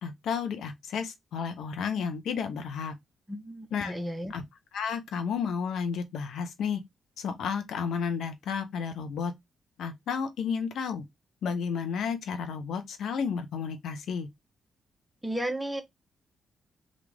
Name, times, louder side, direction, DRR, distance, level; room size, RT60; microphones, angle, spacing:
voice 1, 0.0-2.9 3.7-4.0 4.3-4.4 4.7-6.8 7.2-9.3 9.8-11.0 11.4-14.3, left 6 dB, 65° left, 0.7 m, -32 dB
voice 2, 3.3-4.3 15.2-15.8, right 1 dB, 10° right, 0.9 m, -33 dB
3.0 x 2.4 x 3.5 m
hypercardioid pair, 40°, 0 cm